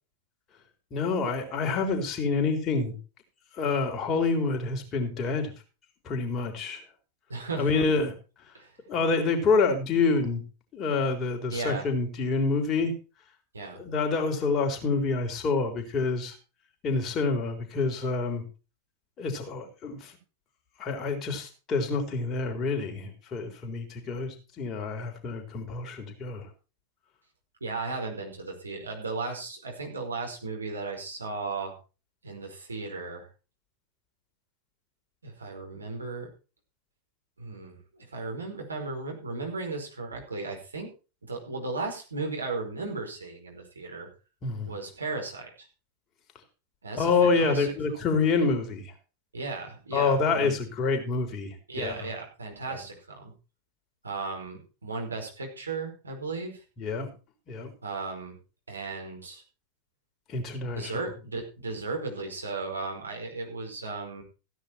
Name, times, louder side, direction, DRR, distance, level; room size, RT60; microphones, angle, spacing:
voice 1, 0.9-3.0 3.5-5.5 6.0-6.8 7.6-8.1 8.9-10.4 10.7-12.9 13.7-16.4 16.8-18.5 19.2-20.2 20.8-26.5 44.4-44.7 47.0-48.9 49.9-52.0 52.7-52.8 56.8-57.1 57.5-57.7 60.3-60.9, left 4 dB, 30° left, 4 dB, 3.9 m, -27 dB
voice 2, 7.3-7.8 8.5-8.7 11.4-11.9 13.5-13.8 27.6-31.8 32.2-33.3 35.2-36.3 37.4-40.9 41.2-44.1 44.6-45.7 46.8-47.7 49.3-50.5 51.7-53.3 54.0-56.6 57.8-58.3 58.7-59.4 60.6-64.2, right 3 dB, 75° right, 2 dB, 4.8 m, -35 dB
15.5 x 10.0 x 4.4 m, 0.33 s
figure-of-eight pair, 90°, 0 cm